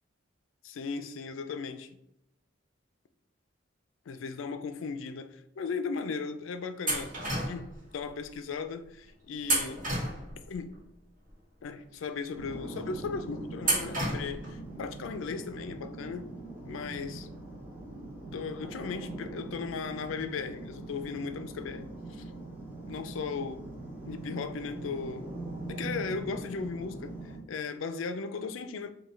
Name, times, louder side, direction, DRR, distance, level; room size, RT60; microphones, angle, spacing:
voice 1, 0.6-1.9 4.1-7.1 7.5-7.6 7.9-9.8 10.5-10.7 11.6-16.3 16.7-17.3 18.3-22.3 22.9-23.7 24.1-25.3 25.7-28.9, left 5 dB, 85° left, 0.4 m, -37 dB
sound 1, 6.9-7.8 9.4-10.5 13.6-14.5, right 1 dB, 45° right, 1.2 m, -30 dB
sound 2, 12.4-27.4, right 2 dB, 10° right, 0.7 m, -42 dB
5.4 x 2.3 x 3.1 m
head